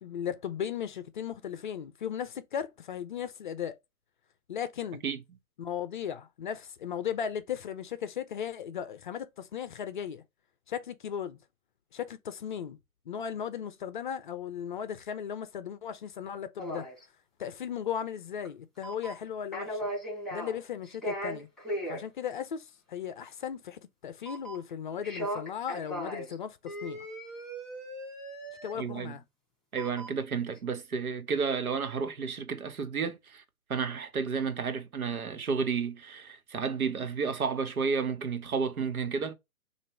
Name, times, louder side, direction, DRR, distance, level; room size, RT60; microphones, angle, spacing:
voice 1, 0.0-3.8 4.5-5.0 5.6-10.2 10.7-11.4 11.9-12.8 13.1-16.9 17.4-19.8 20.3-21.5 21.9-27.0 28.6-29.2, left 8 dB, 35° left, 0.5 m, -36 dB
sound 1, 16.6-17.0 18.4-18.5 18.8-19.3 19.5-20.6 20.9-22.0 24.3-24.7 25.0-26.3 26.7-28.8 29.8-30.2 30.6-30.7, equal, ahead, 2.4 m, -37 dB
voice 2, 28.7-29.1 29.7-33.4 33.7-39.3, right 5 dB, 80° right, 1.3 m, -31 dB
6.6 x 2.5 x 3.1 m
hypercardioid pair, 135°, 42 cm